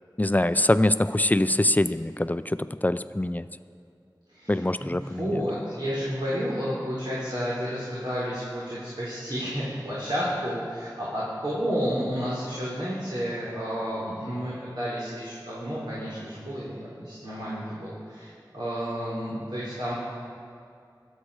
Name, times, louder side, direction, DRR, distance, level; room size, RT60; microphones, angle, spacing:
voice 1, 0.2-2.6 2.8-3.4 4.5-5.4, left 1 dB, 20° left, 13 dB, 0.5 m, -23 dB
voice 2, 4.3-19.9, equal, 75° right, -9 dB, 3.5 m, -31 dB
23.5 x 8.3 x 4.9 m, 2.4 s
wide cardioid pair, 40°, 8 cm